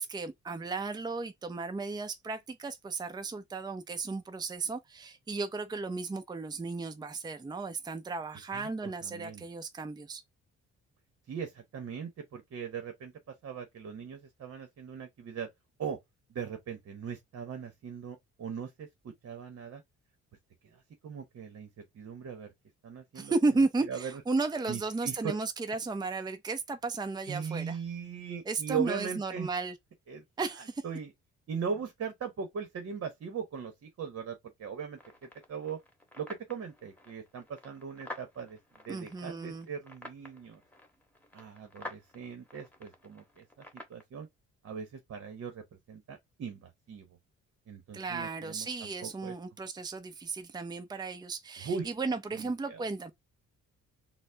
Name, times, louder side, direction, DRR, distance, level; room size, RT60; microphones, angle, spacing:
voice 1, 0.0-10.2 23.1-27.8 28.5-29.7 30.4-30.8 38.9-39.7 47.9-53.1, right 3 dB, 15° right, 0.6 m, -34 dB
voice 2, 8.5-9.4 11.3-15.5 15.8-16.0 16.3-19.8 20.6-21.7 21.9-22.5 22.8-23.3 23.9-24.2 24.7-25.3 27.2-29.5 30.1-30.2 30.6-31.1 31.5-35.8 36.2-38.6 38.9-40.6 41.3-43.6 43.9-44.3 44.6-47.1 47.7-49.3 51.6-51.9 52.3-52.8, right 6 dB, 55° right, 1.0 m, -39 dB
sound 1, 34.9-44.0, left 1 dB, 5° left, 1.4 m, -50 dB
4.1 x 2.1 x 3.4 m
cardioid pair, 90°, 30 cm